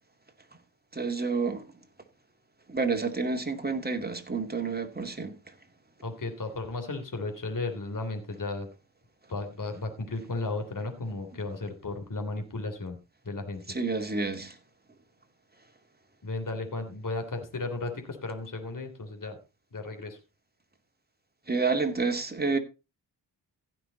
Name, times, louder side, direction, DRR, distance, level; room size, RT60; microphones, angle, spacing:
voice 1, 0.9-1.7 2.7-5.4 13.7-14.6 21.5-22.6, right 4 dB, 20° right, 2.6 m, -29 dB
voice 2, 6.0-8.7 9.3-13.0 13.2-13.6 16.2-19.4 19.7-20.2, left 3 dB, 45° left, 3.0 m, -34 dB
15.5 x 6.2 x 4.1 m
supercardioid pair, 40°, 45 cm